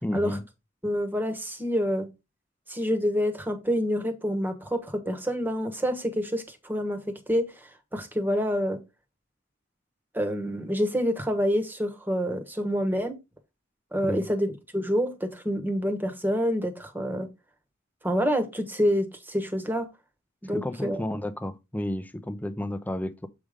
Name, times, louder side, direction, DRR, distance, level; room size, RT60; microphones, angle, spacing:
voice 1, 0.0-0.4 14.0-14.2 20.5-23.3, left 1 dB, 10° left, 0.6 m, -32 dB
voice 2, 0.8-2.1 2.7-7.5 7.9-8.8 10.1-13.2 13.9-17.3 18.0-19.9 20.4-21.0, equal, 10° right, 1.2 m, -27 dB
7.8 x 4.9 x 3.6 m
head